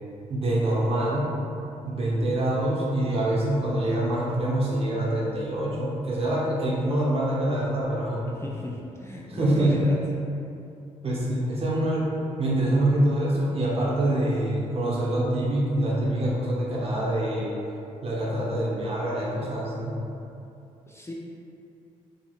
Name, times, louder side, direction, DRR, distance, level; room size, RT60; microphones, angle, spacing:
voice 1, 0.3-1.3 1.8-8.2 9.3-9.8 11.0-17.5 18.0-20.0, right 1 dB, 40° right, -5 dB, 0.8 m, -25 dB
voice 2, 8.3-10.0 20.9-21.1, left 1 dB, 15° left, -3 dB, 0.4 m, -36 dB
2.8 x 2.8 x 2.4 m, 2.7 s
hypercardioid pair, 50°, 15 cm